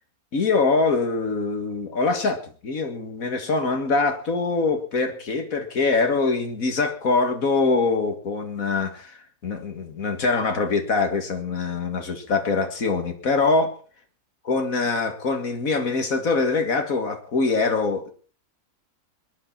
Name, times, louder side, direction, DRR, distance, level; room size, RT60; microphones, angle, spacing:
voice 1, 0.3-13.8 14.5-18.1, left 3 dB, 75° left, 7 dB, 2.3 m, -24 dB
21.5 x 11.0 x 4.4 m, 0.38 s
omnidirectional pair, 1.5 m